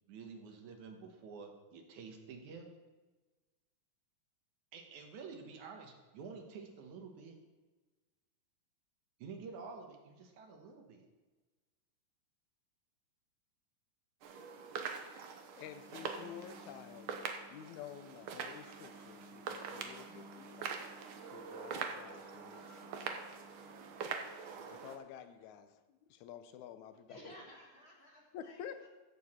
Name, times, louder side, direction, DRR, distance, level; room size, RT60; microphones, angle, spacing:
voice 1, 0.1-2.7 4.7-7.4 9.2-11.1, right 5 dB, 70° right, 3 dB, 2.5 m, -49 dB
sound 1, 14.2-25.0, right 6 dB, 85° right, 1.1 m, -44 dB
voice 2, 15.6-17.1 17.5-20.8 21.3-23.1 24.7-25.8 26.1-27.2 28.3-28.9, left 9 dB, 75° left, 10 dB, 1.9 m, -50 dB
voice 3, 27.1-28.9, left 1 dB, 35° left, -2 dB, 1.1 m, -55 dB
15.0 x 7.0 x 4.3 m, 1.2 s
omnidirectional pair, 3.7 m